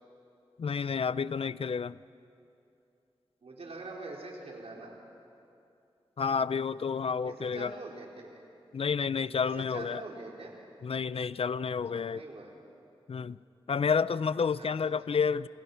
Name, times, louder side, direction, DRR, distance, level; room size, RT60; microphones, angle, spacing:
voice 1, 0.6-2.0 6.2-7.7 8.7-10.0 10.8-12.2 13.1-13.4 13.7-15.5, left 6 dB, 70° left, 0.5 m, -30 dB
voice 2, 3.4-4.9 7.2-8.4 9.4-10.5 11.9-12.5 14.6-14.7 15.1-15.2, right 2 dB, 80° right, 4.8 m, -44 dB
29.0 x 28.5 x 5.8 m
cardioid pair, 55°, 10 cm